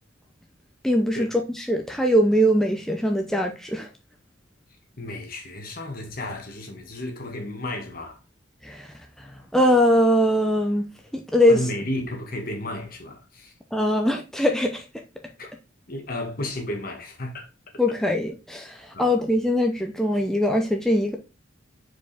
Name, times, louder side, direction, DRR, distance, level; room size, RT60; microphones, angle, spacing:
voice 1, 0.8-3.9 8.6-8.9 9.5-10.8 11.3-11.6 13.7-14.8 17.8-21.2, equal, ahead, 0.7 m, -21 dB
voice 2, 5.0-8.2 11.5-13.5 15.4-15.5 15.9-17.5 17.9-18.0 18.9-19.1, left 1 dB, 50° left, 1.6 m, -33 dB
4.8 x 4.8 x 4.1 m
head